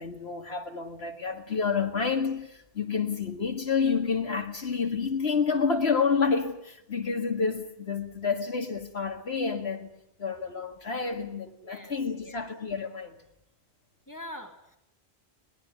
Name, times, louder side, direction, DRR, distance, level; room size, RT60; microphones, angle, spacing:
voice 1, 0.0-9.9 10.2-13.2, left 5 dB, 80° left, 2.2 m, -29 dB
voice 2, 11.6-12.4 14.1-14.8, left 1 dB, 20° left, 2.7 m, -44 dB
22.5 x 20.0 x 9.5 m
omnidirectional pair, 1.1 m